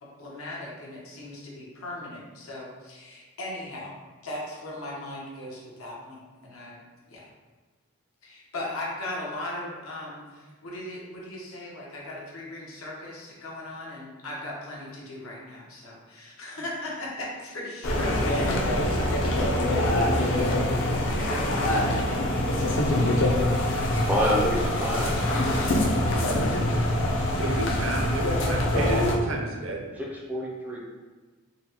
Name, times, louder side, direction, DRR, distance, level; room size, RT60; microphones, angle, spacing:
voice 1, 0.0-3.9 4.2-6.8 7.1-7.3 8.2-18.5, left 1 dB, 90° left, -4 dB, 0.9 m, -38 dB
sound 1, 17.8-29.2, left 1 dB, 60° left, 0.5 m, -24 dB
voice 2, 24.1-25.2 30.0-30.8, equal, 10° right, -3 dB, 0.4 m, -27 dB
voice 3, 27.3-29.8, right 2 dB, 65° right, 1 dB, 0.5 m, -32 dB
3.9 x 2.1 x 2.7 m, 1.3 s
head